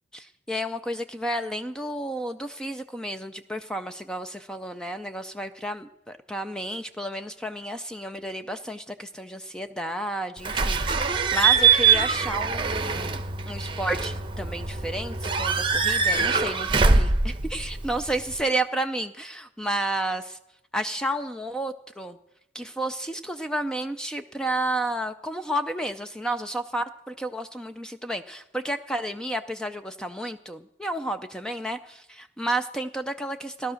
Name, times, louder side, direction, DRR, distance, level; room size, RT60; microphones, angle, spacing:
voice 1, 0.1-20.4 20.7-22.2 22.5-33.7, right 1 dB, 5° left, 8 dB, 0.5 m, -31 dB
Slam / Squeak / Alarm, 10.4-18.4, right 5 dB, 30° right, 0.9 m, -23 dB
17.0 x 12.0 x 6.4 m, 0.86 s
head